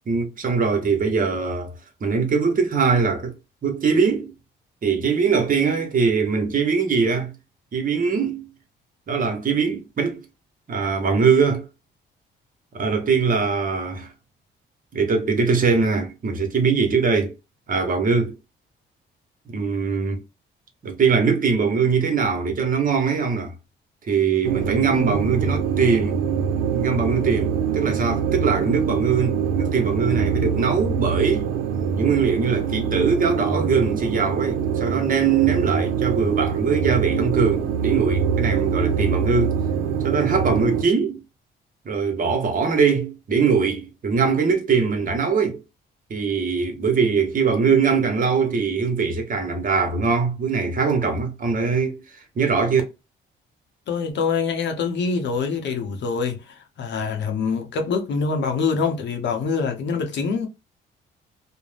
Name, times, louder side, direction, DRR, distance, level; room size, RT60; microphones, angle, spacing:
voice 1, 0.1-1.7 2.0-3.3 3.6-4.3 4.8-7.3 7.7-8.5 9.1-10.2 10.7-11.7 12.7-14.1 14.9-17.3 17.7-18.3 19.5-20.2 20.8-23.5 24.1-26.2 26.7-31.5 32.0-39.6 40.0-41.2 41.8-45.6 46.1-52.0 52.4-52.8, right 5 dB, 45° right, 1.0 m, -21 dB
sound 1, 24.4-40.8, right 7 dB, 85° right, 0.5 m, -24 dB
voice 2, 53.9-60.5, left 5 dB, 65° left, 0.7 m, -25 dB
2.5 x 2.1 x 3.2 m
cardioid pair, 90°, 20 cm